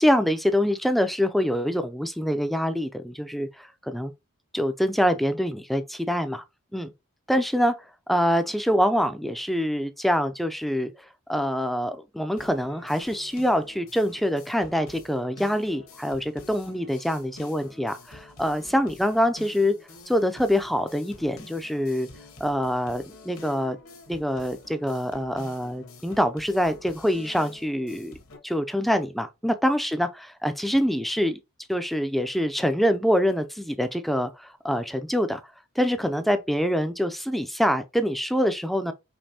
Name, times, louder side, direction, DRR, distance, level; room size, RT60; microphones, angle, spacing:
voice 1, 0.0-4.1 4.5-6.4 6.7-6.9 7.3-7.7 8.1-10.9 11.3-19.7 20.1-22.1 22.4-23.8 24.1-28.1 28.4-31.4 31.7-35.4 35.8-38.9, equal, ahead, 0.3 m, -25 dB
sound 1, 12.4-28.4, left 3 dB, 65° left, 1.2 m, -48 dB
5.2 x 3.0 x 2.8 m
head